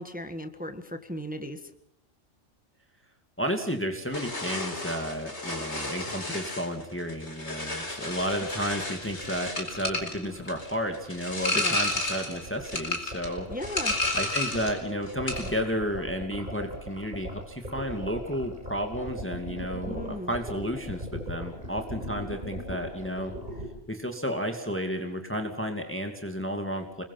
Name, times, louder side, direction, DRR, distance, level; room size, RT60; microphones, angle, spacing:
voice 1, 0.0-1.7 11.5-11.8 13.5-14.0 19.9-20.3, equal, 5° right, 8 dB, 1.7 m, -36 dB
voice 2, 3.4-13.5 14.1-23.3 23.9-27.0, equal, 10° left, 4 dB, 2.4 m, -32 dB
sound 1, 4.1-14.8 15.1-15.6, left 2 dB, 55° left, 4.9 m, -32 dB
sound 2, 7.8-23.6, equal, 35° right, 6.9 m, -39 dB
29.5 x 22.5 x 5.7 m, 0.73 s
omnidirectional pair, 1.4 m